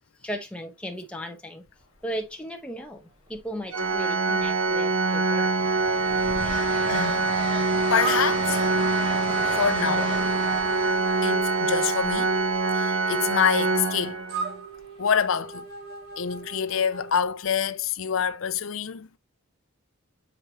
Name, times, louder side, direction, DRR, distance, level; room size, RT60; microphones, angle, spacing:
voice 1, 0.2-1.7 2.0-5.5, equal, 5° left, 1.1 m, -36 dB
Train, 1.7-2.0 3.3-4.0 4.4-13.2 14.8-15.0, right 1 dB, 25° right, 1.4 m, -36 dB
Organ, 3.7-14.6, right 3 dB, 70° right, 0.8 m, -25 dB
voice 2, 6.9-7.2 7.9-8.6 9.6-10.2 11.2-12.3 12.7-14.2 15.0-15.7 16.2-19.1, left 7 dB, 60° left, 0.5 m, -26 dB
sound 1, 8.0-17.1, right 3 dB, 45° right, 1.3 m, -38 dB
6.7 x 5.2 x 2.9 m
head